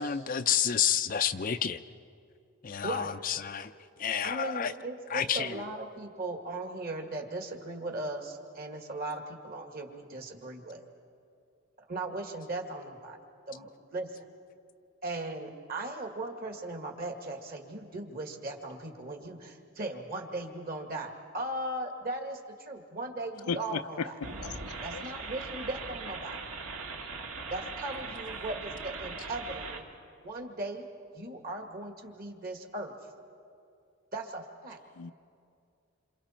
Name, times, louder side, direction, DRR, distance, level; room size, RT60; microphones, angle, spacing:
voice 1, 0.0-1.8 2.6-3.7 4.0-4.7 5.1-5.5, left 8 dB, 40° left, 9 dB, 0.5 m, -29 dB
voice 2, 2.8-3.2 4.2-10.8 11.9-13.2 13.5-14.1 15.0-24.2 24.8-26.4 27.5-29.9 30.2-30.9 31.1-32.9 34.1-34.8, right 2 dB, 40° right, 4 dB, 2.0 m, -38 dB
voice 3, 23.5-24.1 24.4-24.8 35.0-35.1, left 5 dB, 85° left, 12 dB, 0.6 m, -35 dB
sound 1, 24.2-29.8, right 4 dB, 75° right, 1.9 m, -40 dB
28.0 x 27.0 x 4.4 m, 2.4 s
head